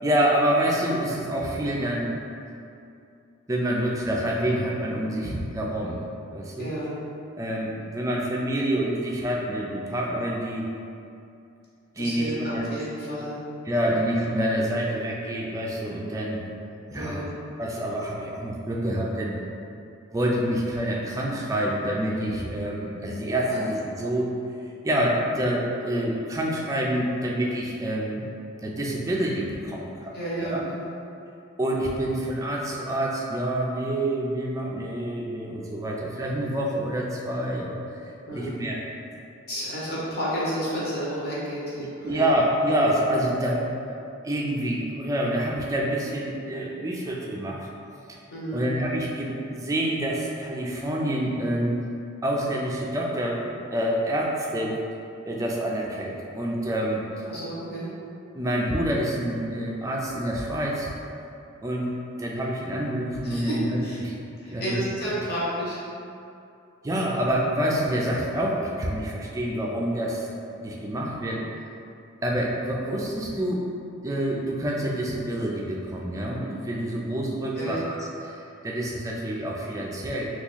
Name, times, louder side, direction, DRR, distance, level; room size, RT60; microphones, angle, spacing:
voice 1, 0.0-2.2 3.5-6.0 6.3-6.7 7.4-10.7 12.0-12.7 13.6-16.4 16.9-17.3 17.6-19.4 20.1-24.3 24.8-28.3 28.6-30.6 31.6-37.8 38.3-38.8 42.0-44.0 44.2-47.7 48.5-51.8 52.2-54.8 55.2-57.0 58.3-60.9 61.6-61.9 62.2-64.1 64.5-64.8 66.8-70.3 70.6-71.5 72.2-73.6 74.0-80.3, right 1 dB, 15° right, -2 dB, 0.3 m, -27 dB
voice 2, 6.6-6.9 12.0-13.4 13.8-13.9 16.9-17.4 23.5-23.6 30.1-30.9 38.3-38.6 39.5-42.3 48.3-48.6 57.2-57.9 63.2-64.0 64.4-65.8 77.6-77.9, right 1 dB, 50° left, -8 dB, 0.9 m, -31 dB
2.9 x 2.3 x 3.8 m, 2.6 s
head